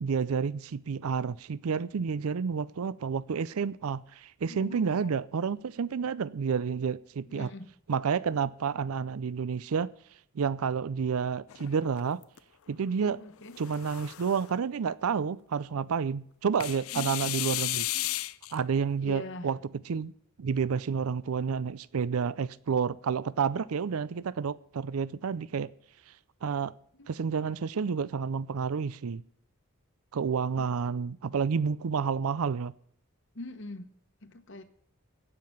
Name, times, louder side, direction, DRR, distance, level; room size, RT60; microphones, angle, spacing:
voice 1, 0.0-7.5 7.9-9.9 10.3-12.2 12.7-13.2 13.6-17.9 18.5-19.6 19.9-20.1 20.4-25.7 26.4-26.7 27.1-29.2 30.1-32.7, right 6 dB, 75° right, 0.5 m, -30 dB
voice 2, 4.5-5.2 7.3-7.7 13.2-13.6 16.9-17.3 19.0-19.5 27.0-27.1 30.6-30.7 33.3-33.9 34.2-34.6, left 2 dB, 55° left, 1.0 m, -43 dB
sound 1, 11.5-12.4 13.4-14.5 16.6-18.6, left 16 dB, 70° left, 0.5 m, -34 dB
16.0 x 5.9 x 9.2 m
head